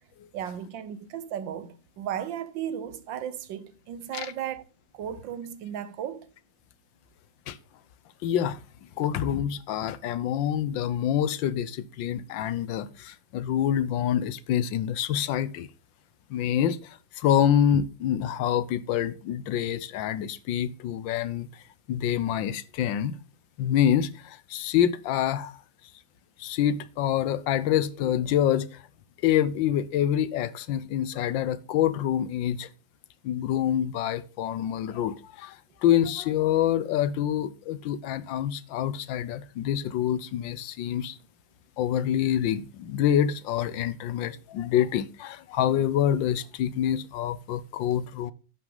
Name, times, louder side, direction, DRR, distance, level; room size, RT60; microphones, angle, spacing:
voice 1, 0.3-4.6 4.9-6.3, right 9 dB, 80° right, 1.6 m, -35 dB
voice 2, 8.2-8.6 9.0-15.7 16.3-16.8 17.2-21.5 21.9-23.1 23.6-25.5 26.4-28.7 29.2-32.7 33.2-35.6 35.8-41.2 41.8-48.3, left 10 dB, 85° left, 1.5 m, -26 dB
10.5 x 6.0 x 3.8 m
omnidirectional pair, 2.0 m